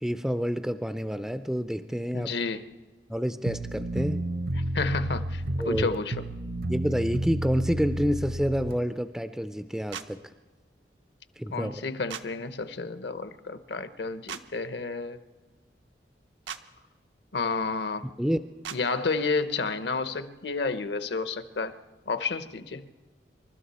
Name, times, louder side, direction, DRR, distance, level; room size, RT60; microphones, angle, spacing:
voice 1, 0.0-2.3 3.1-4.2 5.6-5.9 6.7-10.2 11.4-11.7 18.2-18.4, equal, 5° right, 10 dB, 0.4 m, -28 dB
voice 2, 2.1-2.7 4.5-6.2 11.5-15.2 17.3-18.1 18.7-21.7 22.1-22.9, left 4 dB, 65° left, 11 dB, 0.9 m, -31 dB
sound 1, 3.4-8.8, right 1 dB, 55° right, 0.8 m, -31 dB
sound 2, 9.9-10.1 12.1-12.3 14.3-14.4 16.5-16.6 18.6-18.8, right 8 dB, 85° right, 0.8 m, -37 dB
27.0 x 13.0 x 4.2 m, 1.3 s
head